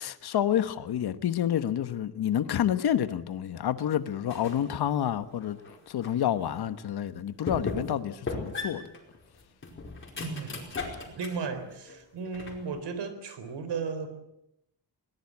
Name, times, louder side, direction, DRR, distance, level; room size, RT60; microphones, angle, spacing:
voice 1, 0.0-5.6 5.9-8.8, left 10 dB, 65° left, 1.2 m, -29 dB
sound 1, 4.3-4.7 5.2-6.2 6.8-6.9 7.5-8.0 8.3-11.5 11.9-12.8, left 3 dB, 30° left, 4.8 m, -37 dB
voice 2, 10.2-10.7 11.1-14.2, right 5 dB, 75° right, 3.9 m, -35 dB
21.5 x 19.0 x 8.5 m
wide cardioid pair, 175°, 42 cm